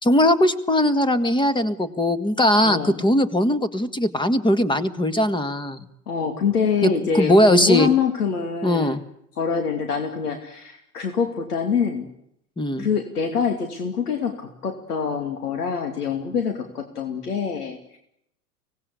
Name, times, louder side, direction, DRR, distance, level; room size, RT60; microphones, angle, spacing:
voice 1, 0.0-5.9 6.8-7.9 8.6-9.0 12.6-12.9, left 1 dB, 10° left, 13 dB, 1.9 m, -20 dB
voice 2, 2.6-3.0 6.1-8.9 9.4-12.1 12.8-18.0, left 6 dB, 80° left, 5 dB, 2.8 m, -25 dB
24.5 x 18.5 x 8.4 m, 0.74 s
hypercardioid pair, 90°, 46 cm